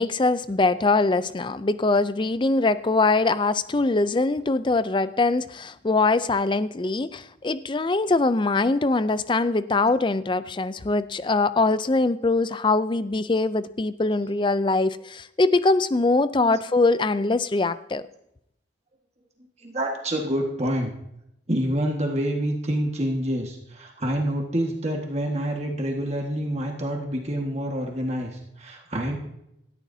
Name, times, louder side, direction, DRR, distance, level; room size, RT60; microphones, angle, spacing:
voice 1, 0.0-18.0, left 3 dB, 25° left, 15 dB, 0.4 m, -22 dB
voice 2, 19.6-20.9 21.5-29.2, equal, 35° right, 1 dB, 1.6 m, -27 dB
18.5 x 13.5 x 2.7 m, 0.81 s
head